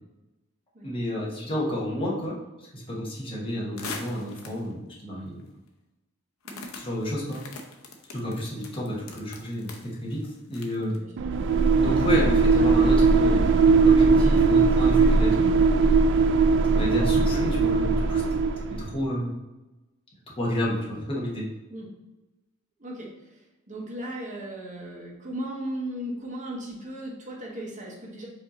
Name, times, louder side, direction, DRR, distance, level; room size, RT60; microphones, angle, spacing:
voice 1, 0.8-5.4 6.7-7.4 8.1-10.2 10.5-11.0 11.8-13.5 13.9-15.5 16.7-18.2 18.7-19.3 20.4-21.5, left 1 dB, 25° left, -4 dB, 1.0 m, -30 dB
sound 1, 3.8-4.7 5.4-5.5 6.4-11.0, left 3 dB, 65° left, 0.7 m, -41 dB
sound 2, 11.2-19.0, right 4 dB, 55° right, 0.3 m, -20 dB
voice 2, 22.8-28.3, right 1 dB, 35° right, -3 dB, 1.0 m, -36 dB
5.1 x 2.8 x 3.8 m, 1.0 s
head